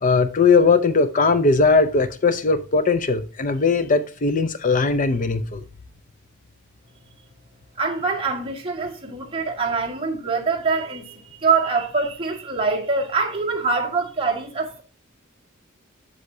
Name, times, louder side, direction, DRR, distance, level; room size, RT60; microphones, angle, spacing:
voice 1, 0.0-5.6, left 4 dB, 40° left, 0.6 m, -19 dB
voice 2, 7.8-14.8, right 4 dB, 25° right, 1.7 m, -24 dB
8.0 x 7.1 x 2.7 m
head